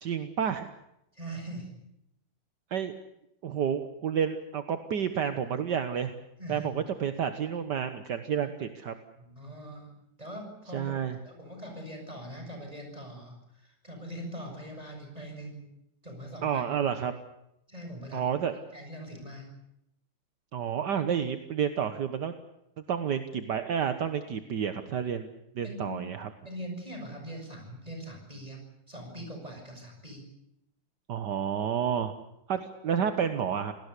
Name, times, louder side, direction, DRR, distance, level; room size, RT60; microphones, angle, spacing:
voice 1, 0.0-0.7 2.7-3.0 3.4-6.1 6.5-9.0 10.7-11.2 16.4-17.1 18.1-18.6 20.5-22.3 22.9-25.3 25.6-26.3 31.1-32.1 32.5-33.7, right 8 dB, 65° right, 9 dB, 1.8 m, -30 dB
voice 2, 1.1-1.7 6.4-6.7 9.2-9.9 10.2-10.9 11.3-15.6 16.0-16.6 17.7-18.3 18.7-19.5 25.6-26.0 26.4-28.6 28.9-30.2, equal, 20° right, 3 dB, 7.3 m, -42 dB
27.5 x 19.0 x 8.3 m, 0.83 s
omnidirectional pair, 2.0 m